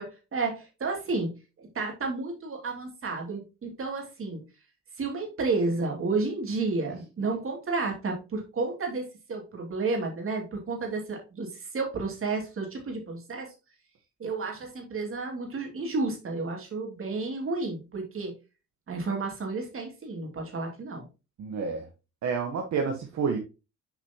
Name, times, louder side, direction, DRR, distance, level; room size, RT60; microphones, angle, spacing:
voice 1, 0.0-1.3 1.6-4.4 5.0-13.5 14.2-18.3 18.9-21.0, right 3 dB, 45° right, 2 dB, 2.5 m, -31 dB
voice 2, 21.4-21.9 22.2-23.4, right 5 dB, 65° right, 3 dB, 1.2 m, -29 dB
7.3 x 4.9 x 2.9 m, 0.29 s
cardioid pair, 90°, 30 cm